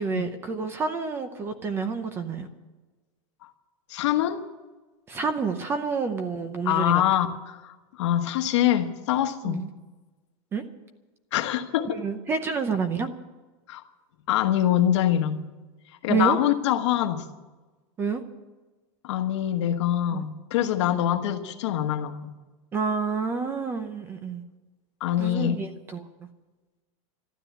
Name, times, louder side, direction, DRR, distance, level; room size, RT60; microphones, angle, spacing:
voice 1, 0.0-2.5 5.1-7.0 9.4-9.7 10.5-10.6 11.9-13.1 16.1-16.4 18.0-18.2 20.1-20.2 22.7-24.4 25.2-26.3, right 5 dB, 15° right, 9 dB, 0.7 m, -28 dB
voice 2, 3.9-4.4 6.6-9.7 11.3-12.0 13.7-13.8 14.3-15.5 16.0-17.2 19.0-22.3 25.0-25.6, left 11 dB, 55° left, 7 dB, 1.3 m, -24 dB
13.0 x 12.5 x 8.1 m, 1.2 s
supercardioid pair, 180°, 18 cm